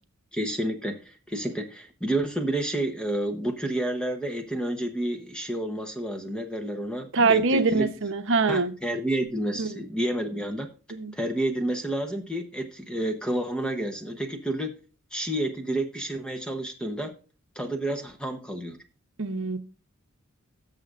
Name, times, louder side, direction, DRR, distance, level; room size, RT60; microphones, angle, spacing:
voice 1, 0.3-7.9 8.5-10.7 11.1-14.7 15.1-17.1 17.6-18.8, right 1 dB, 5° left, 5 dB, 0.9 m, -30 dB
voice 2, 7.1-8.7 9.6-9.8 10.9-11.1 19.2-19.6, right 4 dB, 60° right, 8 dB, 0.9 m, -23 dB
17.5 x 6.7 x 2.5 m, 0.37 s
head